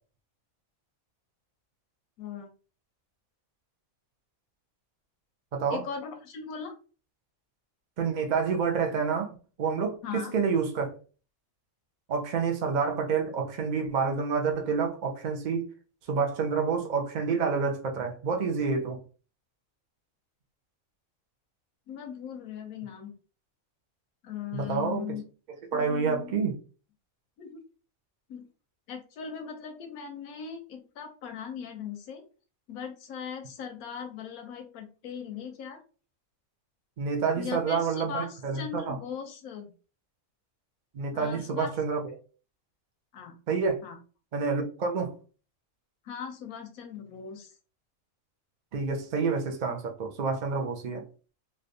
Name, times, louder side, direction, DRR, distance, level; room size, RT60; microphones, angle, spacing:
voice 1, 2.2-2.5 5.7-6.7 10.0-10.3 21.9-23.1 24.2-25.2 25.7-26.3 27.4-27.6 28.3-28.4 28.9-32.2 32.7-35.8 37.4-39.7 41.1-41.7 43.1-43.4 43.8-44.0 46.0-47.5, left 7 dB, 85° left, 1.1 m, -39 dB
voice 2, 5.5-5.8 8.0-10.9 12.1-15.7 16.1-19.0 24.5-25.1 25.7-26.5 37.0-39.0 40.9-42.2 43.5-43.8 44.3-45.1 48.7-51.0, right 5 dB, 50° right, 0.5 m, -28 dB
3.3 x 2.6 x 2.6 m
omnidirectional pair, 1.5 m